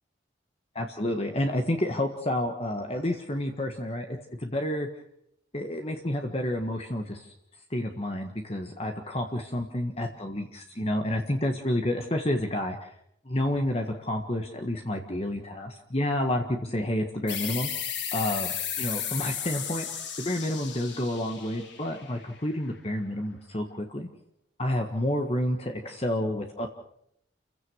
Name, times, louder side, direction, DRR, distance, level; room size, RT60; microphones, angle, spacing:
voice 1, 0.7-4.9 5.5-7.3 7.7-12.9 13.2-17.7 18.1-19.9 20.2-24.1 24.6-26.7, left 1 dB, 30° left, 4 dB, 1.6 m, -29 dB
sound 1, 17.3-22.5, left 8 dB, 75° left, 3.8 m, -34 dB
30.0 x 16.0 x 6.4 m, 0.74 s
head